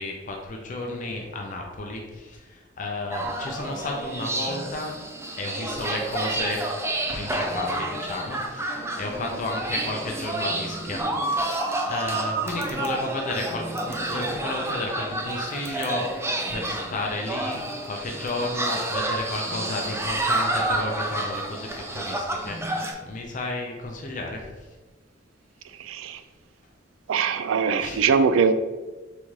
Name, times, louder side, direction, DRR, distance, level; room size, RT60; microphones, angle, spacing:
voice 1, 0.0-4.9 5.4-6.6 7.1-16.1 16.5-24.4 27.8-28.0, left 2 dB, 40° left, 1 dB, 0.5 m, -32 dB
sound 1, 3.1-22.9, right 2 dB, 15° right, 0.5 m, -29 dB
voice 2, 25.8-26.2 27.1-28.5, right 6 dB, 80° right, 11 dB, 0.3 m, -22 dB
4.1 x 3.6 x 3.1 m, 1.2 s
head